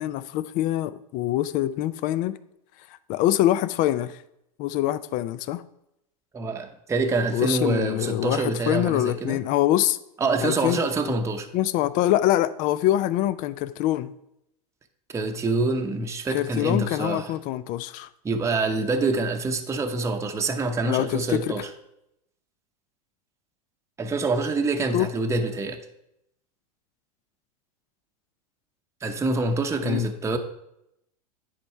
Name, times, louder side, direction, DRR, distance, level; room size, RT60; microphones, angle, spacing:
voice 1, 0.0-2.3 3.1-4.2 4.6-5.6 7.3-10.0 10.4-10.8 11.5-14.1 16.3-18.1 20.8-21.5 24.9-25.1 29.8-30.1, left 13 dB, 45° left, 16 dB, 0.5 m, -24 dB
voice 2, 6.3-9.4 10.2-11.5 15.1-17.4 18.2-21.8 24.0-25.8 29.0-30.4, right 3 dB, 15° right, 4 dB, 0.8 m, -26 dB
10.0 x 4.3 x 4.6 m, 0.80 s
hypercardioid pair, 105°, 19 cm